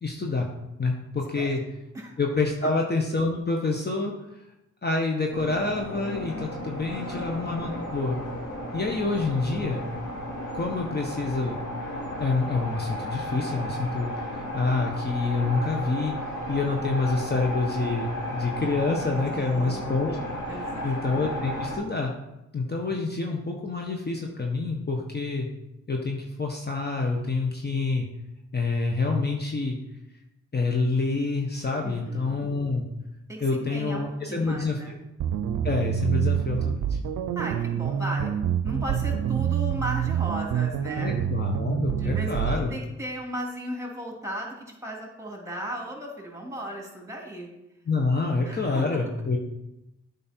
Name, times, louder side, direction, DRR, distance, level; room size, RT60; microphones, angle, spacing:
voice 1, 0.0-0.5 0.8-1.6 2.2-4.1 4.8-8.2 8.7-9.8 10.5-11.6 12.2-16.1 16.5-22.1 22.5-25.5 25.9-28.1 28.5-29.8 30.5-32.8 33.4-35.0 35.6-37.0 41.0-42.8 47.9-49.4, left 3 dB, 30° left, 1 dB, 1.3 m, -27 dB
sound 1, 5.3-21.8, equal, 65° left, 2.8 m, -34 dB
voice 2, 6.9-7.3 19.3-19.9 20.5-21.0 31.8-32.3 33.3-35.0 37.3-38.3 38.6-41.3 42.0-47.5 48.4-48.8, right 1 dB, 10° right, 0 dB, 3.0 m, -36 dB
sound 2, 35.2-42.6, right 9 dB, 75° right, 0.6 m, -27 dB
8.6 x 5.4 x 4.5 m, 0.90 s
supercardioid pair, 50°, 31 cm